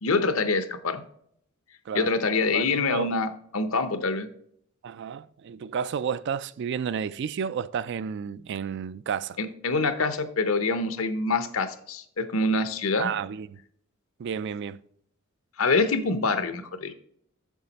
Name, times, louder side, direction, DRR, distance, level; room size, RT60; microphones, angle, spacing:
voice 1, 0.0-1.0 1.9-4.3 9.4-13.1 15.6-16.9, left 3 dB, 70° left, 0.8 m, -25 dB
voice 2, 2.5-3.1 4.8-9.4 13.0-13.6 14.2-14.8, right 7 dB, 55° right, 0.3 m, -31 dB
7.2 x 6.6 x 4.0 m
head